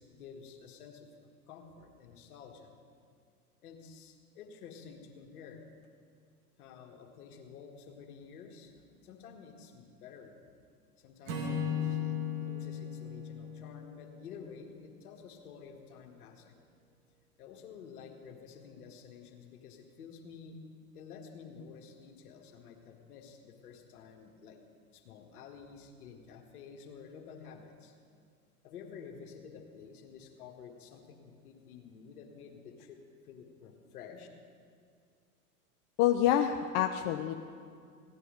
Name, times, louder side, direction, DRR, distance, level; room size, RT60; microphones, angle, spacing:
voice 1, 0.0-2.7 3.6-5.7 6.6-10.3 11.0-16.5 17.4-20.6 20.9-24.6 24.9-27.9 28.6-33.0 33.2-34.3, left 6 dB, 70° left, 3 dB, 1.8 m, -51 dB
Acoustic guitar / Strum, 11.3-14.6, left 6 dB, 55° right, 2.4 m, -36 dB
voice 2, 36.0-37.3, left 11 dB, 45° left, 5 dB, 0.7 m, -27 dB
16.0 x 10.0 x 5.1 m, 2.2 s
hypercardioid pair, 95°, 46 cm